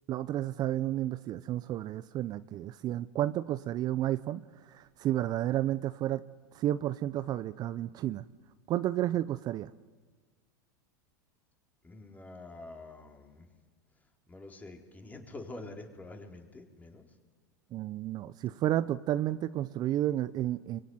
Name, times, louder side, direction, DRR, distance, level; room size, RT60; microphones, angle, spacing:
voice 1, 0.1-6.2 6.5-8.2 8.7-9.7 17.7-20.8, right 13 dB, 40° right, 14 dB, 0.7 m, -31 dB
voice 2, 11.8-13.5 14.3-17.0, left 2 dB, 15° left, 3 dB, 4.1 m, -46 dB
24.0 x 24.0 x 9.5 m, 1.4 s
hypercardioid pair, 105°, 11 cm